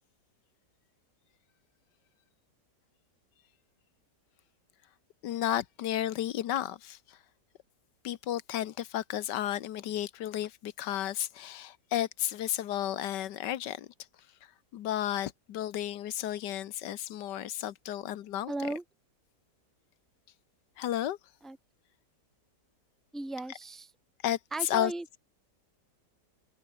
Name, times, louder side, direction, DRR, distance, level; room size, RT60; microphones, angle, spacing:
voice 1, 5.2-7.2 8.0-13.9 14.4-18.5 20.8-21.2 24.2-24.9, left 12 dB, 90° left, 1.5 m, -33 dB
voice 2, 18.5-18.8 21.4-21.6 23.1-23.9 24.5-25.0, right 2 dB, ahead, 0.6 m, -36 dB
omnidirectional pair, 1.8 m